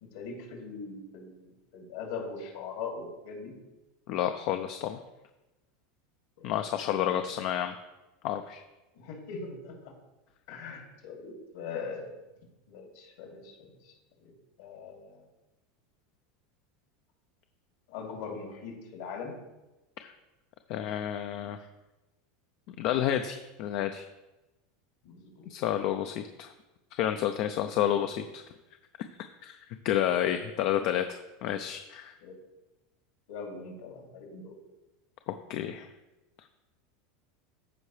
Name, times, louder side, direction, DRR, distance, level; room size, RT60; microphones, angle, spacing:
voice 1, 0.0-3.5 6.4-6.5 7.2-7.3 8.9-9.7 10.5-12.1 12.7-13.7 14.6-15.2 17.9-19.3 25.0-25.5 25.9-26.0 32.2-32.4 33.3-34.6, left 5 dB, 75° left, 0 dB, 2.6 m, -41 dB
voice 2, 4.1-5.0 6.4-7.7 8.2-8.6 20.0-20.1 20.7-21.6 22.8-24.1 25.5-26.5 26.9-28.4 29.4-29.6 29.8-32.2 35.3-35.9, left 11 dB, 60° left, 8 dB, 0.5 m, -30 dB
13.5 x 4.7 x 3.3 m, 1.0 s
supercardioid pair, 120°, 0 cm